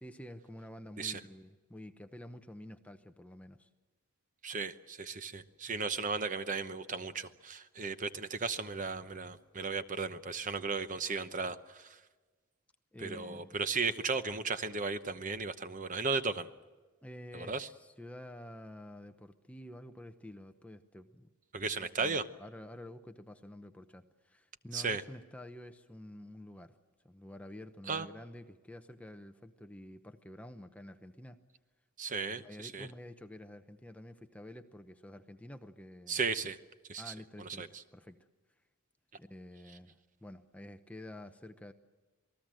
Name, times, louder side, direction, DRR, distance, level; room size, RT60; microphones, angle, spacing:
voice 1, 0.0-3.7 12.9-13.6 17.0-21.3 21.6-26.8 27.0-31.4 32.3-36.2 37.0-37.7 37.9-38.2 39.2-41.7, left 1 dB, 5° left, 8 dB, 0.8 m, -49 dB
voice 2, 4.4-12.0 13.0-16.5 17.3-17.7 21.5-22.2 24.7-25.0 27.9-28.1 32.0-32.9 36.1-36.6 36.9-37.8, right 4 dB, 35° right, 11 dB, 0.9 m, -35 dB
27.5 x 19.5 x 7.7 m, 1.3 s
head